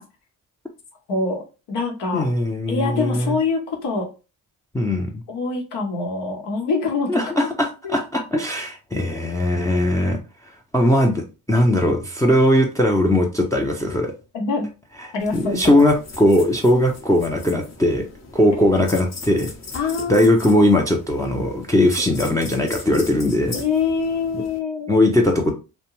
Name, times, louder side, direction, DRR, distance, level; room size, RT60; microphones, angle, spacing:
voice 1, 1.1-1.4 1.7-2.3 2.7-4.1 5.3-7.5 7.8-8.0 14.3-14.7 15.1-15.9 19.7-20.4 23.5-25.0, left 4 dB, 75° left, 0.9 m, -25 dB
voice 2, 2.1-3.4 4.7-5.1 7.1-10.2 10.7-14.1 15.0-18.1 18.3-19.5 20.1-23.5 24.9-25.5, left 1 dB, 10° left, 0.5 m, -19 dB
sound 1, 15.2-24.6, left 3 dB, 40° left, 0.8 m, -39 dB
2.5 x 2.2 x 2.9 m
supercardioid pair, 45°, 42 cm